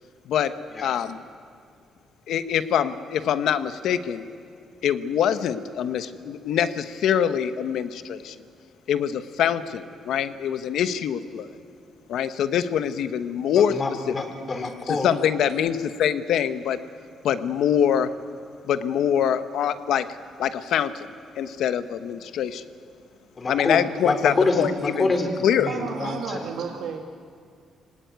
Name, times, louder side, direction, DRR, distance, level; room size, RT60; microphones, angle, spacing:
voice 1, 0.8-1.2 2.3-4.3 4.8-8.3 8.9-11.5 12.1-13.7 14.9-16.8 17.2-18.1 18.6-20.0 20.4-22.6 23.5-25.1 25.4-25.7, left 9 dB, 75° left, 11 dB, 1.1 m, -24 dB
voice 2, 13.5-15.1 23.4-26.5, left 3 dB, 35° left, 5 dB, 3.8 m, -26 dB
voice 3, 25.6-27.1, right 6 dB, 75° right, 3 dB, 1.5 m, -33 dB
23.0 x 18.5 x 9.3 m, 2.3 s
cardioid pair, 90°, 0 cm